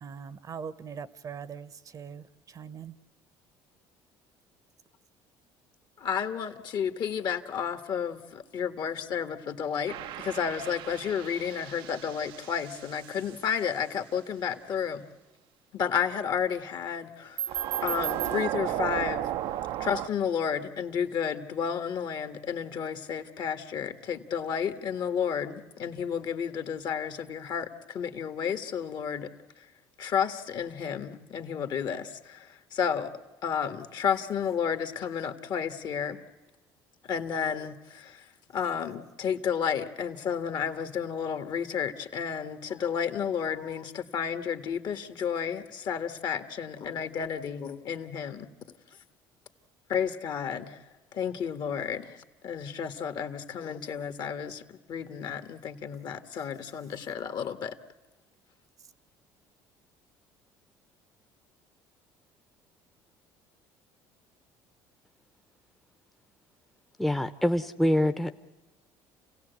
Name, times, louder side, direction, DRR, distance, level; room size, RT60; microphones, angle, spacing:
voice 1, 0.0-2.9, right 6 dB, 40° right, 17 dB, 0.9 m, -41 dB
voice 2, 6.0-15.0 15.7-17.4 17.8-19.2 19.8-29.3 30.0-33.1 33.4-36.2 37.1-38.2 38.5-48.5 49.9-50.8 51.1-52.1 52.4-54.6 54.9-57.8, left 7 dB, 55° left, 9 dB, 1.6 m, -31 dB
sound 1, 9.9-13.4 17.4-20.1, right 12 dB, 70° right, 0.7 m, -34 dB
voice 3, 67.0-68.4, left 1 dB, ahead, 8 dB, 0.8 m, -25 dB
29.0 x 16.5 x 8.1 m, 1.2 s
supercardioid pair, 95°, 9 cm